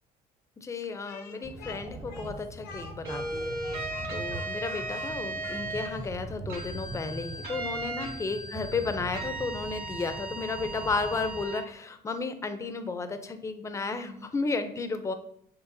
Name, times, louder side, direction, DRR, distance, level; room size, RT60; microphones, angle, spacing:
voice 1, 0.6-15.1, left 4 dB, 15° left, 9 dB, 0.4 m, -33 dB
Speech, 1.0-6.1, left 5 dB, 85° left, 0.7 m, -47 dB
sound 1, 1.4-11.5, right 2 dB, 25° right, 0.6 m, -42 dB
sound 2, 3.1-5.9 6.5-11.6, right 2 dB, 65° right, 1.5 m, -37 dB
6.5 x 2.7 x 2.6 m, 0.68 s
cardioid pair, 110°, 17 cm